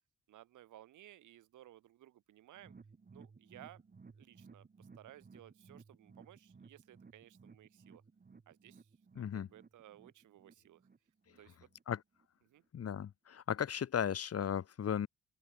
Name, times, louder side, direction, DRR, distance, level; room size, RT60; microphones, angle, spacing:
voice 1, 0.3-2.7 3.1-3.8 4.1-8.0 8.5-10.9 11.4-11.7 12.4-12.6, right 13 dB, 80° right, 5.1 m, -58 dB
sound 1, 2.5-11.8 12.1-12.3 12.6-12.7, right 4 dB, 30° right, 4.4 m, -59 dB
voice 2, 9.2-9.5 11.9-12.0 12.7-15.1, left 8 dB, 50° left, 2.2 m, -36 dB
open air
cardioid pair, 90°, 30 cm